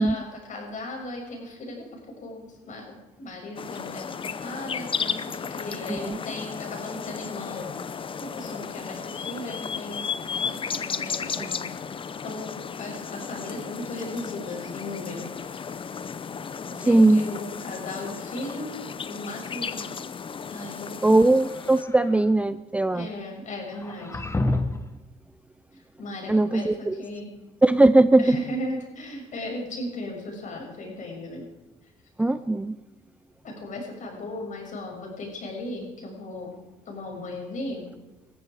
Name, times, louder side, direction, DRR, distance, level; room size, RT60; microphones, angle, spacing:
voice 1, 0.0-15.9 16.7-18.8 19.0-20.1 20.5-21.2 22.9-24.2 25.7-27.3 28.2-31.4 33.4-36.5 36.9-37.9, left 1 dB, 45° left, 0 dB, 6.6 m, -37 dB
sound 1, 3.6-21.8, left 6 dB, 30° left, 0.8 m, -34 dB
voice 2, 16.9-17.3 21.0-23.1 26.3-27.0 27.6-28.4 32.2-32.8, right 2 dB, 10° right, 13 dB, 0.5 m, -19 dB
sound 2, 21.4-22.3 23.7-25.0, left 2 dB, 15° left, 1.4 m, -29 dB
20.0 x 14.5 x 5.0 m, 1.1 s
cardioid pair, 110°, 17 cm